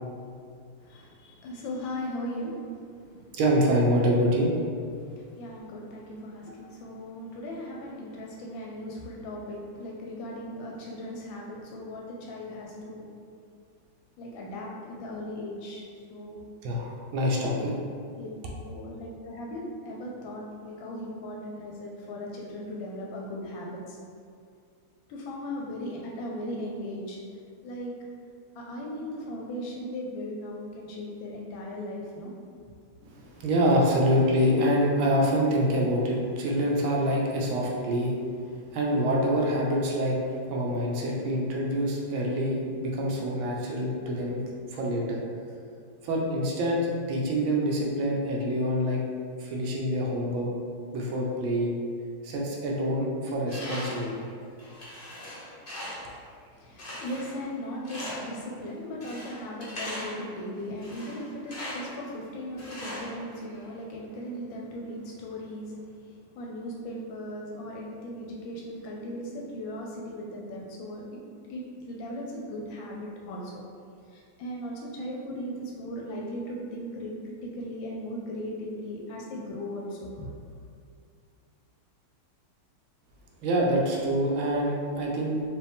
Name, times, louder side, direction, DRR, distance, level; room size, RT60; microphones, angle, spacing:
voice 1, 0.8-2.7 3.1-3.2 5.0-13.1 14.2-15.8 16.1-16.4 18.1-18.3 18.6-24.0 25.1-27.2 27.6-27.9 28.5-32.3 56.5-71.2 71.5-73.6 74.1-80.3, equal, 75° left, -2 dB, 1.2 m, -38 dB
voice 2, 3.3-4.5 6.5-6.6 16.6-17.7 33.2-38.1 38.7-40.2 40.5-44.4 44.7-45.2 46.0-49.0 49.4-50.6 50.9-51.7 52.2-54.3 83.4-85.4, equal, 75° right, -2 dB, 1.4 m, -26 dB
Tools, 53.5-54.1 54.6-56.2 56.8-57.5 57.8-58.4 59.0-60.3 60.8-62.0 62.6-63.6, left 1 dB, 50° left, 0.6 m, -39 dB
4.7 x 2.7 x 3.4 m, 2.3 s
omnidirectional pair, 2.4 m